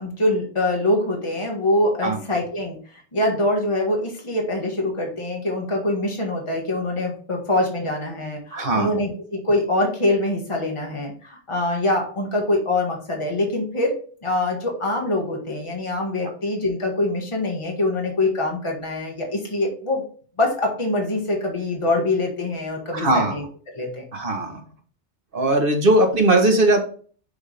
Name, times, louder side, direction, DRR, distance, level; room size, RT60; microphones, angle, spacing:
voice 1, 0.0-13.9 14.2-20.0 20.4-24.0, left 1 dB, 25° left, 0 dB, 1.6 m, -24 dB
voice 2, 8.5-8.9 22.9-23.4 24.1-24.6 25.3-26.8, right 1 dB, 50° right, 4 dB, 1.5 m, -19 dB
6.6 x 3.6 x 5.1 m, 0.43 s
omnidirectional pair, 1.2 m